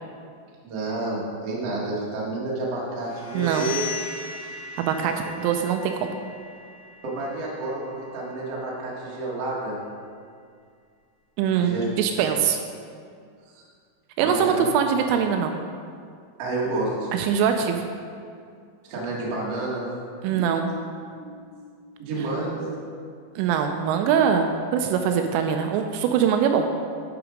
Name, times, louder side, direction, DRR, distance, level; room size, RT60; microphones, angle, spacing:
voice 1, 0.6-3.8 7.0-9.8 11.6-11.9 12.2-12.3 13.5-13.6 14.2-14.6 16.4-17.1 18.9-19.9 20.3-20.7 21.1-21.4 22.0-22.7, right 2 dB, 60° right, -5 dB, 1.6 m, -30 dB
sound 1, 3.1-8.7, left 4 dB, 75° left, 4.0 m, -38 dB
voice 2, 3.3-3.7 4.8-6.1 11.4-12.6 14.2-15.6 17.1-17.9 20.2-20.7 23.4-26.7, right 7 dB, 85° right, 5 dB, 3.0 m, -23 dB
11.0 x 6.0 x 5.1 m, 2.2 s
omnidirectional pair, 5.9 m